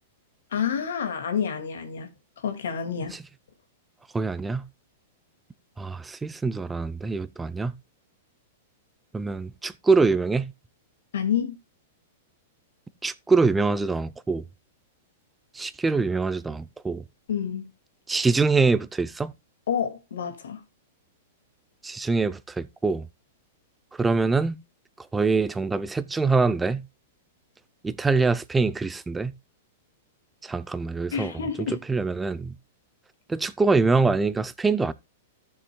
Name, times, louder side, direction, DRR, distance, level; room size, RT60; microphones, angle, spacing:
voice 1, 0.5-2.1 2.4-3.2 11.1-11.6 17.3-17.7 19.7-20.6 31.1-31.8, left 7 dB, 85° left, 2.0 m, -28 dB
voice 2, 4.1-4.6 5.8-7.7 9.1-10.5 13.0-14.4 15.5-17.0 18.1-19.3 21.8-23.1 24.0-24.6 25.1-26.8 27.8-29.3 30.4-32.5 33.3-34.9, right 4 dB, 10° right, 0.5 m, -24 dB
14.0 x 7.1 x 2.2 m
hypercardioid pair, 150°, 0 cm